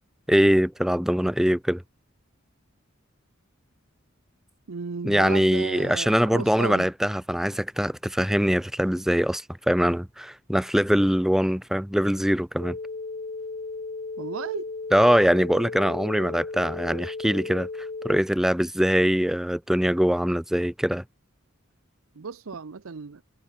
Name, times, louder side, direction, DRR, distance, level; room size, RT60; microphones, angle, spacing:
voice 1, 0.3-1.8 5.0-12.8 14.9-17.7 18.0-21.0, equal, ahead, 0.5 m, -22 dB
voice 2, 4.7-6.9 14.2-14.7 22.1-23.2, right 5 dB, 90° right, 0.7 m, -35 dB
sound 1, 12.6-18.2, left 3 dB, 40° left, 0.7 m, -35 dB
head